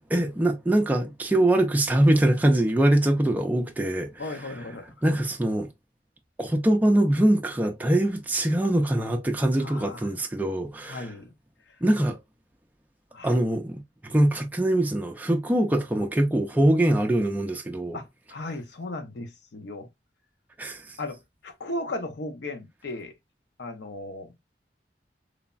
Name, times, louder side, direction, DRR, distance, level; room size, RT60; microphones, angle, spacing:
voice 1, 0.0-4.4 5.0-5.7 6.4-11.1 11.8-12.2 13.2-13.8 14.1-18.0 20.6-21.0, right 1 dB, 10° right, 0.3 m, -23 dB
voice 2, 4.2-4.9 9.6-10.1 10.9-11.3 13.1-13.3 17.9-19.9 21.0-21.2 21.4-23.1 23.6-24.3, left 2 dB, 75° left, 0.6 m, -36 dB
3.2 x 2.0 x 2.3 m
head